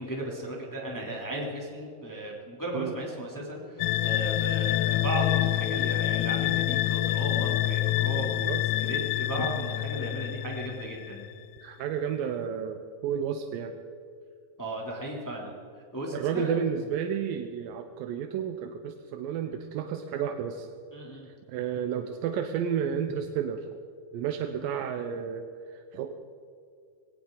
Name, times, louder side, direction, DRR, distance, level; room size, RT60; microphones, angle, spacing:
voice 1, 0.0-8.5 8.8-11.2 14.6-15.5 15.9-16.6 20.9-21.3, right 1 dB, 5° left, -2 dB, 2.1 m, -35 dB
sound 1, 3.8-11.3, left 14 dB, 80° left, 2.3 m, -27 dB
Drum, 9.4-11.2, left 3 dB, 60° left, 2.5 m, -42 dB
voice 2, 11.6-13.7 16.1-20.7 21.5-23.7 24.1-26.1, right 8 dB, 80° right, 6 dB, 2.4 m, -31 dB
20.5 x 18.0 x 3.9 m, 2.4 s
omnidirectional pair, 4.2 m